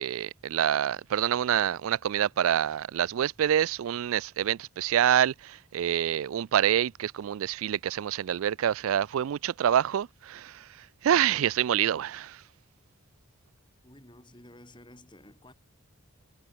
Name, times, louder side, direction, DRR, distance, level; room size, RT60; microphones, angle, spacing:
voice 1, 0.0-10.7 11.0-12.4, right 10 dB, 70° right, 0.3 m, -26 dB
voice 2, 13.8-15.5, left 1 dB, 20° left, 5.7 m, -52 dB
head